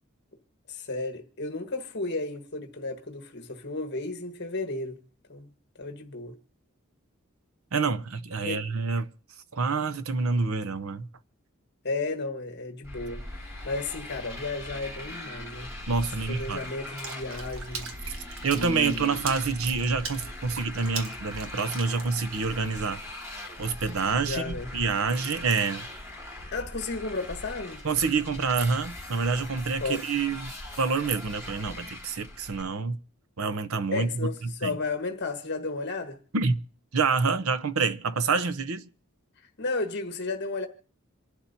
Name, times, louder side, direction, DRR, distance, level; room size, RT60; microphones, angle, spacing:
voice 1, 0.7-5.0 5.3-5.5 5.8-6.4 8.4-8.6 11.8-15.7 16.3-17.9 18.5-19.3 24.2-24.7 26.5-27.8 29.8-30.0 33.9-36.2 39.6-40.7, left 3 dB, 55° left, 1.4 m, -33 dB
voice 2, 7.7-9.1 9.5-11.1 15.9-16.6 18.4-23.0 23.6-25.9 27.8-33.0 33.4-34.8 36.3-36.6 36.9-38.9, right 4 dB, 85° right, 0.8 m, -27 dB
Motorcycle, 12.8-32.6, left 1 dB, 15° right, 4.8 m, -41 dB
Water / Splash splatter, 17.0-22.8, right 5 dB, 70° right, 1.3 m, -41 dB
27.5 x 11.5 x 2.7 m
head